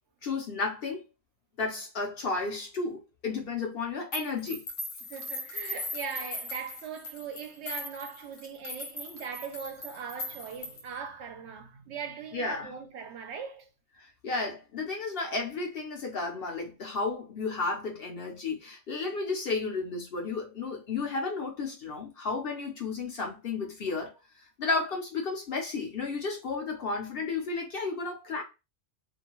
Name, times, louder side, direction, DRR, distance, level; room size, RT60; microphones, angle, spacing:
voice 1, 0.2-1.0 1.6-4.6 12.3-12.7 14.0-24.1 24.4-28.4, left 3 dB, 55° left, 0.9 m, -33 dB
sound 1, 4.1-11.0, left 1 dB, 80° left, 1.2 m, -39 dB
voice 2, 5.1-13.7, right 6 dB, 70° right, 0.8 m, -40 dB
2.6 x 2.2 x 2.9 m
omnidirectional pair, 1.2 m